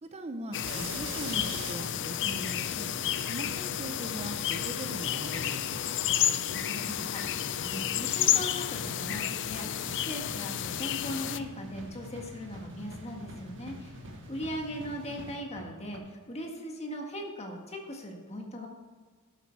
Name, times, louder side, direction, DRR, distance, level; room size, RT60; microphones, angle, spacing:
voice 1, 0.0-2.9 3.3-5.8, right 1 dB, 30° right, 6 dB, 0.7 m, -40 dB
sound 1, 0.5-11.4, left 11 dB, 55° left, 0.4 m, -31 dB
sound 2, 0.6-16.0, right 1 dB, 60° right, 1.6 m, -45 dB
voice 2, 6.3-14.0 14.3-18.7, equal, 30° left, 2 dB, 1.7 m, -39 dB
11.5 x 8.4 x 4.6 m, 1.5 s
head